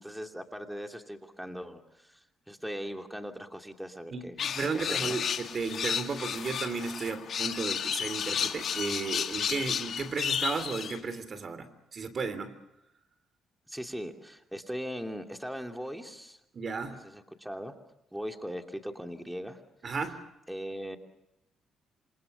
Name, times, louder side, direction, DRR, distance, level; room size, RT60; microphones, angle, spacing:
voice 1, 0.0-4.4 4.7-5.2 13.7-16.4 17.0-17.8 18.1-19.6 20.5-21.0, equal, 5° right, 4 dB, 2.7 m, -39 dB
voice 2, 4.1-12.5 16.5-17.0 19.8-20.2, right 4 dB, 45° right, 12 dB, 3.3 m, -34 dB
sound 1, 4.4-11.0, left 8 dB, 60° left, 2.0 m, -32 dB
27.5 x 27.0 x 6.9 m, 0.87 s
cardioid pair, 90°, 0 cm